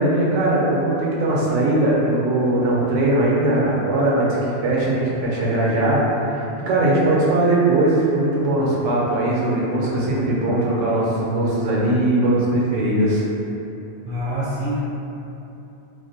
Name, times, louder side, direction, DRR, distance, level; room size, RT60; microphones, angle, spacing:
voice 1, 0.0-13.2, right 1 dB, 90° right, -5 dB, 0.9 m, -20 dB
voice 2, 14.0-14.8, equal, 65° right, -10 dB, 0.7 m, -25 dB
2.5 x 2.0 x 2.6 m, 2.9 s
omnidirectional pair, 1.2 m